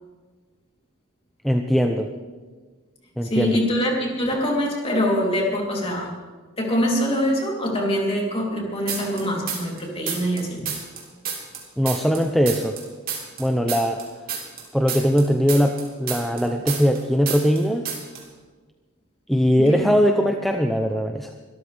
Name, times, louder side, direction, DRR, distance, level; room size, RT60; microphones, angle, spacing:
voice 1, 1.4-2.1 3.2-3.6 11.8-12.8 13.4-14.0 14.7-17.9 19.3-21.3, equal, ahead, 4 dB, 0.6 m, -20 dB
voice 2, 3.3-6.1 6.6-10.7 19.6-19.9, equal, 25° left, -2 dB, 3.3 m, -24 dB
sound 1, 8.9-9.8 10.1-12.8 13.1-17.0 17.3-17.6 17.9-18.2, right 7 dB, 45° right, 3.2 m, -30 dB
23.5 x 13.5 x 3.4 m, 1.4 s
head